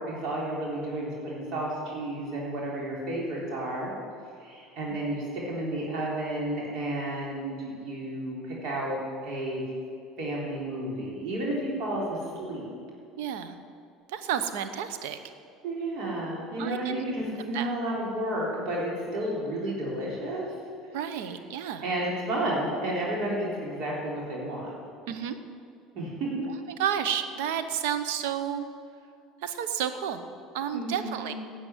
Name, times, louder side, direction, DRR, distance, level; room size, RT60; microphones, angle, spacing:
voice 1, 0.0-3.9 4.4-9.6 10.2-12.7 15.6-20.5 21.8-24.7 25.9-26.5 30.7-31.3, right 1 dB, 60° right, -4 dB, 3.8 m, -32 dB
voice 2, 13.2-13.6 14.1-15.2 16.6-17.0 17.5-17.7 20.9-21.8 25.1-25.4 26.8-28.7 29.4-30.2 30.5-31.3, right 9 dB, 80° right, 10 dB, 0.9 m, -31 dB
11.0 x 7.8 x 9.5 m, 2.4 s
supercardioid pair, 100°, 0 cm